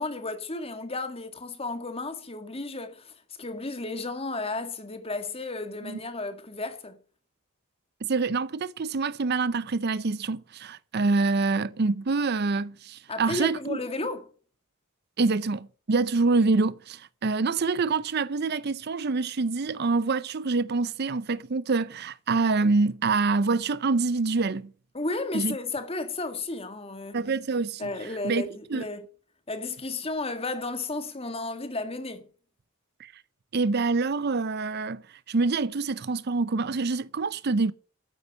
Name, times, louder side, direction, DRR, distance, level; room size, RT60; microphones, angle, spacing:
voice 1, 0.0-7.0 13.1-14.3 24.9-27.2 27.8-29.1 29.5-32.2, left 3 dB, 25° left, 1.9 m, -33 dB
voice 2, 8.0-13.8 15.2-24.7 25.3-25.6 27.1-27.9 28.2-28.4 28.7-28.9 33.0-33.1 33.5-35.0 35.3-37.7, right 3 dB, 50° right, 0.5 m, -26 dB
13.5 x 9.7 x 5.4 m
head